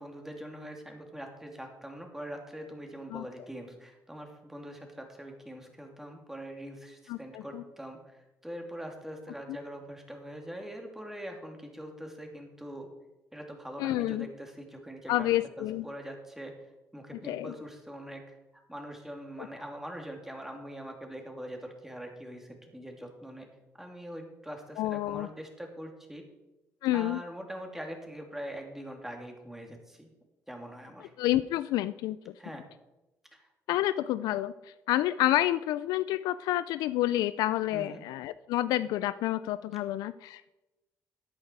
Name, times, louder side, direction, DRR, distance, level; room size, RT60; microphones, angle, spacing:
voice 1, 0.0-12.9 13.3-15.3 15.6-16.5 16.9-18.4 18.7-23.5 23.8-26.2 26.9-30.1 30.5-31.1 32.4-32.7 33.3-33.5 37.7-38.0, equal, 5° right, 2 dB, 3.0 m, -43 dB
voice 2, 7.1-7.6 13.8-14.3 15.1-15.8 17.2-17.5 19.4-19.5 24.8-25.3 26.8-27.2 31.2-32.3 33.7-40.5, left 14 dB, 85° left, 14 dB, 0.3 m, -29 dB
13.0 x 8.9 x 4.7 m, 1.0 s
supercardioid pair, 70°, 7 cm